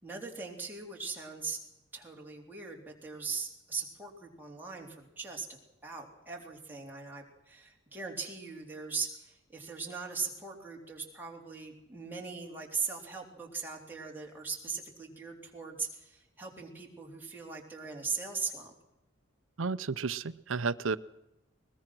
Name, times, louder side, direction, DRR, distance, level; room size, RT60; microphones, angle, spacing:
voice 1, 0.0-1.6 1.9-5.5 5.8-18.7, right 5 dB, 10° right, 3.6 m, -39 dB
voice 2, 19.6-21.0, right 4 dB, 85° right, 0.7 m, -32 dB
21.5 x 20.5 x 6.2 m
head